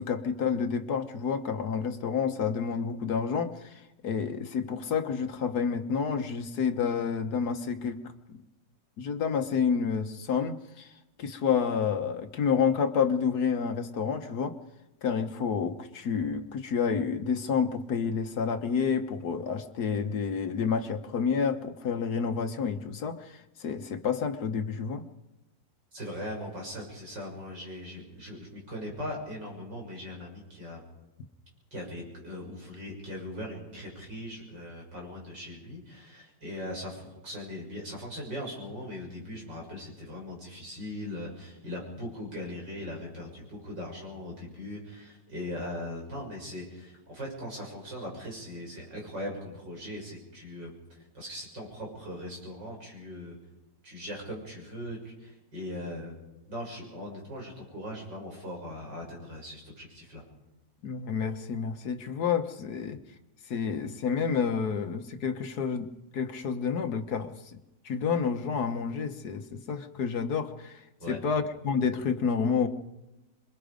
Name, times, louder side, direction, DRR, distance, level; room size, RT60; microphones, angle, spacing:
voice 1, 0.0-8.0 8.3-8.4 9.0-10.9 11.2-14.5 15.0-25.0 60.8-63.0 63.5-65.9 66.1-67.6 67.8-72.7, left 6 dB, 60° left, 7 dB, 1.6 m, -29 dB
voice 2, 25.9-30.8 31.7-50.7 51.1-53.3 53.8-56.1 56.5-60.2 71.0-71.2, left 1 dB, 75° right, -1 dB, 7.4 m, -40 dB
27.0 x 22.5 x 5.1 m, 0.97 s
omnidirectional pair, 1.9 m